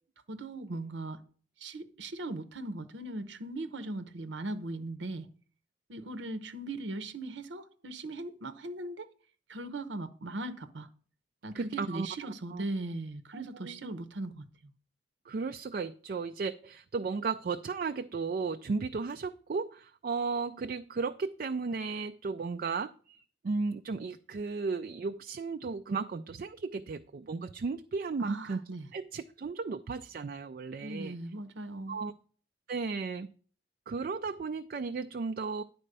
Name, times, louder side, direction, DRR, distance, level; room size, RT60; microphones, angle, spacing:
voice 1, 0.3-1.2 1.6-5.3 5.9-9.1 9.5-10.9 11.4-14.7 28.2-28.9 30.8-32.0, right 2 dB, 80° right, 0.8 m, -39 dB
voice 2, 11.5-12.1 12.5-12.6 13.3-13.9 15.3-28.6 28.9-31.1 31.9-32.1 32.7-33.3 33.9-35.6, right 4 dB, 50° right, 0.3 m, -35 dB
9.9 x 4.3 x 6.6 m
head